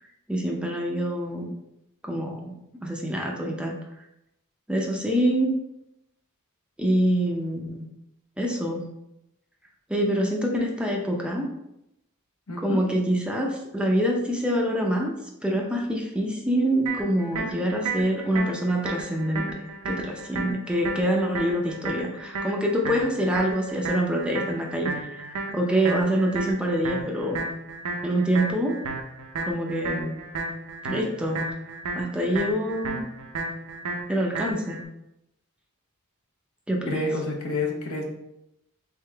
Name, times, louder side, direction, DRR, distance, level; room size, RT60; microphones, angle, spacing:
voice 1, 0.3-1.5 2.0-3.7 4.7-5.5 6.8-7.8 8.4-8.9 9.9-11.5 12.6-15.1 15.4-19.4 19.9-27.4 28.0-28.8 29.4-30.2 30.8-31.6 32.0-33.0 34.1-34.8 36.7-37.0, right 1 dB, 5° right, 0 dB, 0.5 m, -26 dB
voice 2, 12.5-12.8 36.9-38.0, left 2 dB, 70° left, 0 dB, 1.0 m, -28 dB
sound 1, 16.9-34.8, right 3 dB, 85° right, 0.7 m, -33 dB
3.7 x 3.6 x 3.3 m, 0.84 s
head